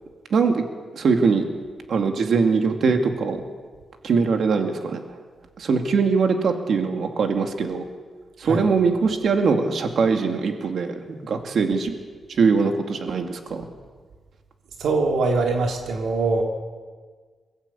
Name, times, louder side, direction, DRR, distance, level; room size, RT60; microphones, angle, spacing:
voice 1, 0.3-0.6 0.9-1.4 1.9-3.4 4.0-5.0 5.6-7.8 8.4-11.9 12.4-13.6, right 5 dB, 65° right, 4 dB, 2.3 m, -22 dB
voice 2, 14.8-16.4, right 3 dB, 85° right, 2 dB, 2.6 m, -22 dB
22.0 x 14.5 x 8.5 m, 1.5 s
cardioid pair, 80°, 0 cm